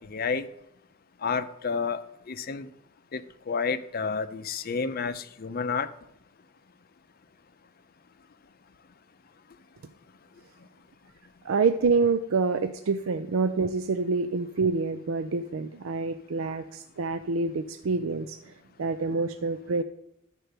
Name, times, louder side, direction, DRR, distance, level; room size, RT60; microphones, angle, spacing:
voice 1, 0.1-0.5 1.2-2.7 3.1-5.9, left 5 dB, 45° left, 12 dB, 0.5 m, -30 dB
voice 2, 11.4-18.5 18.8-19.8, right 4 dB, 80° right, 10 dB, 0.5 m, -27 dB
11.5 x 4.5 x 6.7 m, 0.77 s
head